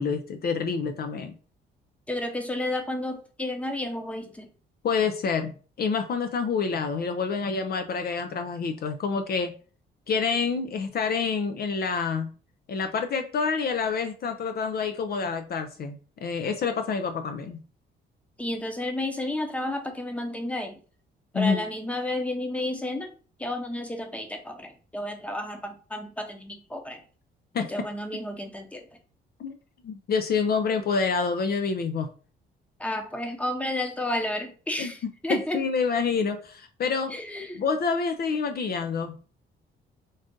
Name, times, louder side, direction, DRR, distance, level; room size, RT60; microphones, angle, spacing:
voice 1, 0.0-1.3 4.8-9.5 10.1-12.3 12.7-17.6 21.3-21.6 27.5-27.7 29.4-29.5 29.8-32.1 34.8-34.9 35.3-37.2 37.5-39.1, left 5 dB, 50° left, 7 dB, 0.5 m, -27 dB
voice 2, 2.1-4.5 18.4-20.8 21.3-23.1 23.4-27.0 27.6-28.8 32.8-35.6 37.1-37.6, left 1 dB, 5° left, 5 dB, 0.8 m, -31 dB
3.9 x 2.5 x 3.7 m, 0.39 s
cardioid pair, 90°, 20 cm